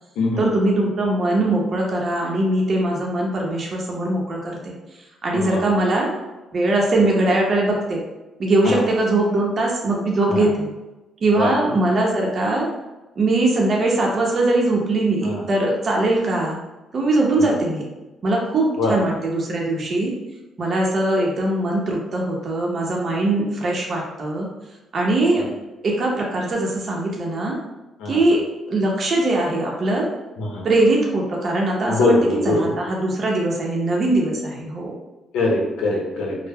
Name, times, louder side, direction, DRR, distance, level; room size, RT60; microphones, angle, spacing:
voice 1, 0.4-4.7 5.2-6.1 6.5-8.0 8.4-10.7 11.2-12.7 13.2-16.6 16.9-17.8 18.2-20.1 20.6-24.5 24.9-25.5 25.8-27.6 28.1-28.4 28.7-30.1 30.6-32.2 32.4-34.9, right 2 dB, 50° right, -2 dB, 0.6 m, -21 dB
voice 2, 5.3-5.6 7.0-7.1 8.6-8.8 10.3-10.5 11.3-11.5 15.2-15.4 17.4-17.5 18.8-19.0 28.0-28.2 30.4-30.7 31.9-32.7 35.3-36.4, left 2 dB, 85° left, -1 dB, 0.6 m, -22 dB
2.1 x 2.0 x 3.4 m, 1.1 s
cardioid pair, 90°, 0 cm